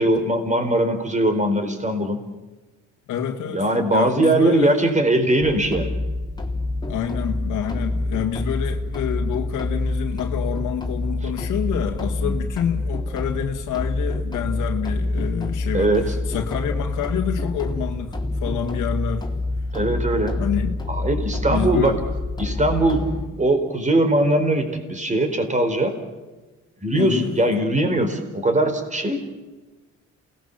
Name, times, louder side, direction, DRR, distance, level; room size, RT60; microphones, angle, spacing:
voice 1, 0.0-2.2 3.5-6.0 11.2-11.3 12.2-12.4 15.7-16.2 19.7-20.4 20.9-22.0 22.4-23.0 23.4-26.0 26.8-29.2, right 1 dB, 25° right, 4.5 m, -21 dB
voice 2, 3.1-4.7 6.9-19.3 20.3-20.8 21.5-22.0 26.9-27.4, left 9 dB, 85° left, 2.0 m, -27 dB
sound 1, 5.4-23.3, left 2 dB, 15° left, 3.6 m, -27 dB
28.5 x 19.5 x 7.2 m
cardioid pair, 90°, 30 cm